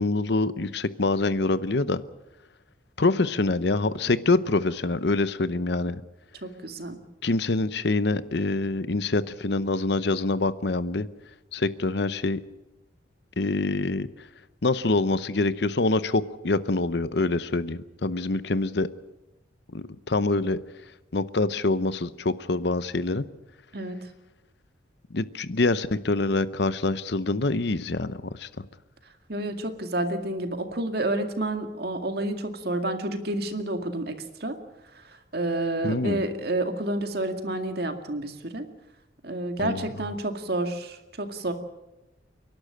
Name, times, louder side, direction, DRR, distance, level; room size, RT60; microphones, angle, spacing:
voice 1, 0.0-2.0 3.0-6.0 7.2-11.1 11.5-12.4 13.4-14.1 14.6-18.9 19.7-20.6 21.1-23.2 25.1-28.5 35.8-36.2 39.6-39.9, left 3 dB, 60° left, 15 dB, 0.8 m, -25 dB
voice 2, 6.4-7.0 23.7-24.0 29.3-34.6 35.3-38.7 39.2-41.5, right 1 dB, 55° right, 6 dB, 2.1 m, -29 dB
29.5 x 12.0 x 8.8 m, 1.0 s
head